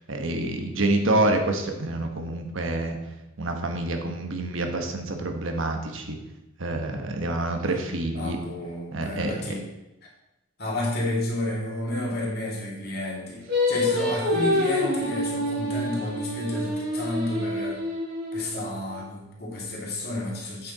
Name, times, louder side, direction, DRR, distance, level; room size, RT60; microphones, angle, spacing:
voice 1, 0.1-3.0 3.4-6.2 6.6-8.4 8.9-9.3, right 2 dB, 70° right, 4 dB, 1.1 m, -27 dB
voice 2, 8.1-9.6 10.6-17.8 18.3-20.7, left 1 dB, 50° left, -3 dB, 2.4 m, -31 dB
Singing, 13.5-18.8, left 1 dB, 55° right, 2.7 m, -27 dB
8.4 x 6.9 x 4.0 m, 0.95 s
head